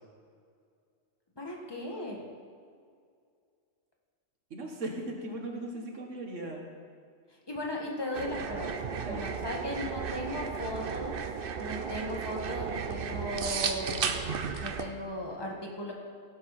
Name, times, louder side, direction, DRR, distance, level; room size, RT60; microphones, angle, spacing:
voice 1, 1.4-2.2 7.3-11.2 11.6-14.0 14.6-15.9, left 1 dB, 20° left, -1 dB, 1.7 m, -37 dB
voice 2, 4.5-6.6 9.0-9.3, right 1 dB, 85° right, 1 dB, 1.8 m, -38 dB
sound 1, 8.1-14.9, right 6 dB, 55° right, 0.8 m, -34 dB
16.0 x 7.8 x 4.3 m, 2.2 s
omnidirectional pair, 1.2 m